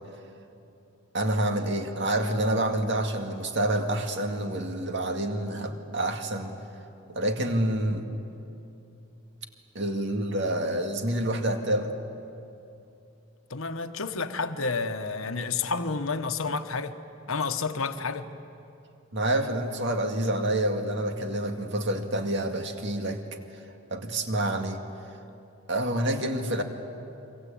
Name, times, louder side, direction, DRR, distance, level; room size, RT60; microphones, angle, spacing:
voice 1, 1.1-6.6 7.1-8.0 9.7-11.9 19.1-23.2 23.9-24.8 25.7-26.6, right 1 dB, 55° right, 2.1 m, -28 dB
voice 2, 13.5-17.0 17.3-18.3, left 4 dB, 70° left, 1.2 m, -30 dB
27.5 x 24.5 x 8.7 m
head